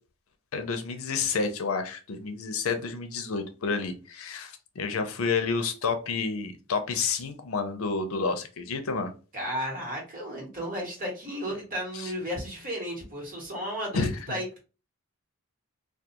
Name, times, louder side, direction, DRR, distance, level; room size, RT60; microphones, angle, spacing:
voice 1, 0.5-9.1 11.9-12.1 13.9-14.4, left 4 dB, 80° left, 0.5 m, -30 dB
voice 2, 9.3-14.4, equal, 40° right, 1.1 m, -33 dB
2.3 x 2.2 x 2.8 m
head